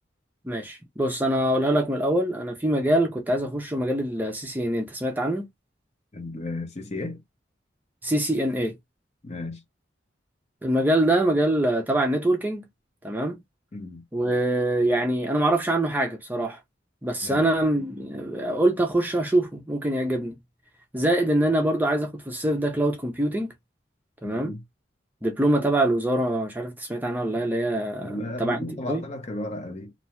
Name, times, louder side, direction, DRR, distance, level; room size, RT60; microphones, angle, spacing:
voice 1, 0.4-5.5 8.0-8.8 10.6-12.7 13.0-13.4 14.1-16.6 17.0-20.4 20.9-23.5 24.2-24.5 25.2-28.6 28.8-29.0, right 1 dB, 10° right, 0.5 m, -24 dB
voice 2, 6.1-7.2 9.2-9.6 13.7-14.0 17.2-17.5 24.2-24.6 28.0-29.9, left 1 dB, 35° left, 0.7 m, -34 dB
2.6 x 2.2 x 3.0 m
head